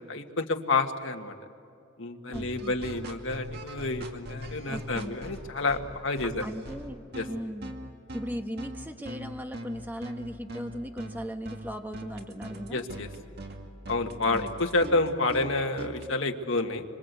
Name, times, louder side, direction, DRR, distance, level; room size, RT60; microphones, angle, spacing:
voice 1, 0.0-1.3 2.0-6.4 7.1-7.3 12.7-13.1 13.9-16.8, left 3 dB, 65° left, 4 dB, 1.7 m, -29 dB
voice 2, 2.3-2.7 4.7-5.2 6.4-7.7 8.1-12.9 14.3-14.5, equal, 10° right, 5 dB, 1.3 m, -38 dB
sound 1, 2.3-16.1, equal, 50° right, 2.2 m, -41 dB
26.5 x 25.5 x 8.3 m, 2.5 s
head